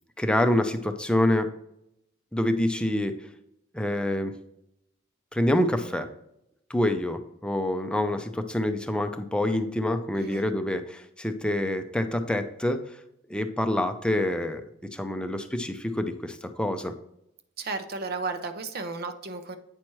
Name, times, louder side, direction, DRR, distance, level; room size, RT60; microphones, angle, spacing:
voice 1, 0.2-1.5 2.3-3.1 3.7-4.3 5.3-6.1 6.7-13.0 13.3-16.9, left 1 dB, 5° left, 7 dB, 0.5 m, -26 dB
voice 2, 10.2-10.5 17.6-19.6, right 3 dB, 50° right, 9 dB, 0.7 m, -33 dB
8.8 x 5.8 x 3.1 m, 0.79 s
head